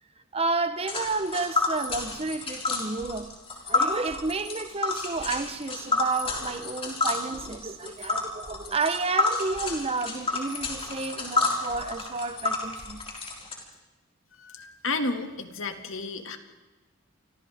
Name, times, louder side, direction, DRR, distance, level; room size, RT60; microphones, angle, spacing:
voice 1, 0.3-3.3 3.7-13.0, right 3 dB, 30° right, 1.0 m, -31 dB
Tick, 0.9-13.5, left 3 dB, 30° left, 4.9 m, -30 dB
voice 2, 14.3-16.4, left 3 dB, 75° left, 2.2 m, -32 dB
29.5 x 24.5 x 3.6 m
head